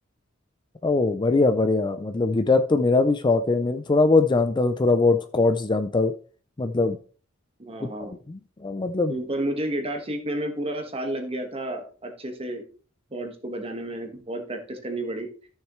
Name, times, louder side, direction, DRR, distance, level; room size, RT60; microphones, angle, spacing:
voice 1, 0.8-6.1 6.6-7.0 7.8-7.9 8.3-9.2, left 3 dB, 20° left, 0.4 m, -21 dB
voice 2, 7.6-8.1 9.1-12.6 13.1-15.3, right 1 dB, 30° right, 1.5 m, -31 dB
13.5 x 6.5 x 3.1 m
head